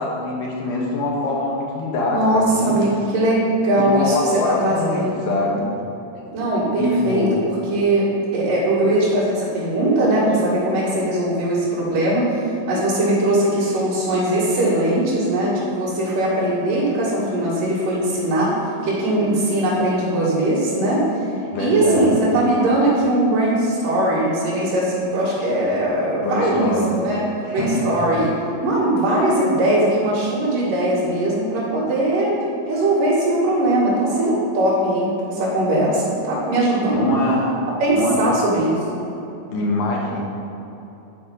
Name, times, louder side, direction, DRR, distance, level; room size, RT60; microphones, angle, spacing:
voice 1, 0.0-2.7 3.8-5.7 6.8-7.4 21.5-22.3 26.2-26.9 27.4-28.2 36.9-37.5 38.0-38.3 39.5-40.2, left 2 dB, 75° left, -2 dB, 2.9 m, -23 dB
voice 2, 2.1-5.2 6.3-18.5 18.8-21.3 21.6-27.2 27.5-28.3 28.6-32.3 32.6-37.1 37.8-39.1, right 1 dB, 75° right, -10 dB, 3.6 m, -20 dB
10.5 x 4.3 x 5.3 m, 3.0 s
omnidirectional pair, 3.9 m